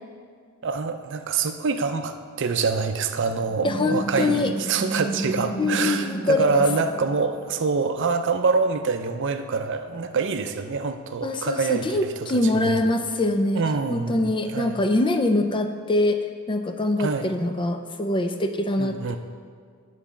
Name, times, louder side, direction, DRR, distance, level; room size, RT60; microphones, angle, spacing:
voice 1, 0.6-12.9 13.6-14.8 17.0-17.3 18.8-19.2, right 4 dB, 60° right, 8 dB, 0.5 m, -26 dB
sound 1, 3.4-7.8, right 1 dB, 80° left, 2.4 m, -32 dB
voice 2, 3.6-4.5 5.6-6.6 11.2-13.6 13.9-16.2 16.5-19.2, left 2 dB, 25° left, 7 dB, 0.5 m, -24 dB
9.1 x 4.1 x 7.2 m, 2.1 s
head